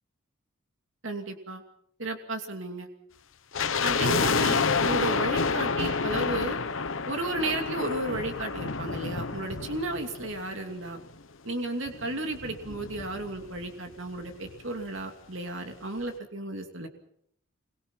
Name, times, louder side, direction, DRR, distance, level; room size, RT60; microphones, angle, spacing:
voice 1, 1.0-1.6 2.0-2.9 3.8-6.6 7.1-11.0 11.4-16.9, right 2 dB, 65° right, 4 dB, 2.7 m, -33 dB
sound 1, 3.5-10.8 11.1-11.2 11.9-13.7 13.9-14.0 14.3-14.6 15.0-15.1, left 4 dB, 65° left, 1.0 m, -29 dB
26.5 x 23.0 x 5.7 m, 0.72 s
head